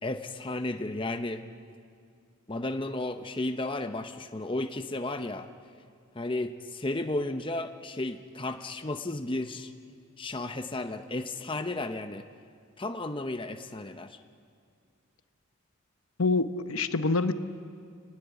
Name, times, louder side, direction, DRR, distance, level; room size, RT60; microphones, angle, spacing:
voice 1, 0.0-1.4 2.5-5.5 6.1-9.7 10.2-12.2 12.8-14.2, left 2 dB, 25° left, 7 dB, 0.8 m, -33 dB
voice 2, 16.2-17.3, left 3 dB, 85° left, 10 dB, 1.0 m, -26 dB
27.0 x 20.0 x 8.3 m, 2.3 s
head